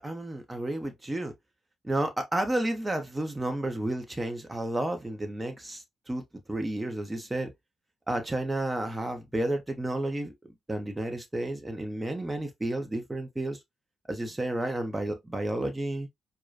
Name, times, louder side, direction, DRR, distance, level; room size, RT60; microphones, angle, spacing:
voice 1, 0.0-1.3 1.8-6.2 6.5-7.5 8.1-10.3 10.7-13.6 14.1-16.1, right 1 dB, 20° right, 1.0 m, -31 dB
4.7 x 2.3 x 2.7 m
hypercardioid pair, 40°, 0 cm